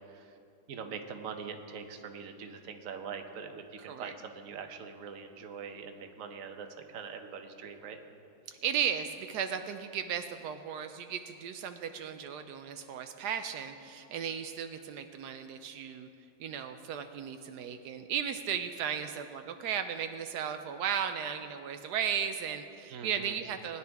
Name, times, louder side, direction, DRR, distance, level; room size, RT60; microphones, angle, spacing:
voice 1, 0.7-8.0 22.9-23.3, right 6 dB, 60° right, 6 dB, 1.2 m, -43 dB
voice 2, 8.5-16.1 16.4-23.8, right 8 dB, 85° right, 7 dB, 1.2 m, -35 dB
19.5 x 10.5 x 3.5 m, 2.6 s
omnidirectional pair, 1.7 m